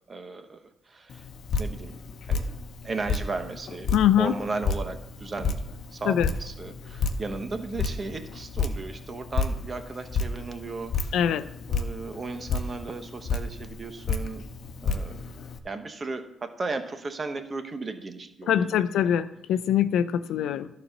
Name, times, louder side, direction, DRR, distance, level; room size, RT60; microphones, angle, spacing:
voice 1, 0.1-0.6 0.9-1.2 1.6-2.0 2.3-2.4 2.8-5.6 5.9-11.2 11.7-14.4 14.8-15.1 15.6-18.8, right 3 dB, 35° right, 7 dB, 1.1 m, -35 dB
Drip, 1.1-15.6, left 4 dB, 60° left, 0.8 m, -32 dB
voice 2, 3.9-4.3 6.1-6.3 11.1-11.5 18.5-20.7, left 10 dB, 80° left, 12 dB, 0.4 m, -23 dB
11.5 x 4.3 x 6.5 m, 0.83 s
cardioid pair, 90°, 0 cm